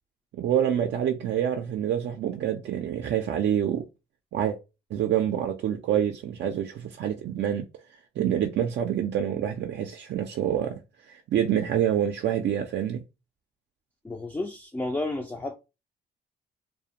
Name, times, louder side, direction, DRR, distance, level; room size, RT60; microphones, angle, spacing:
voice 1, 0.3-3.9 4.3-4.6 4.9-7.6 8.2-10.8 11.1-13.0, right 10 dB, 60° right, 0.4 m, -27 dB
voice 2, 14.0-15.5, left 2 dB, 10° left, 0.3 m, -31 dB
2.4 x 2.1 x 2.8 m
cardioid pair, 90°, 20 cm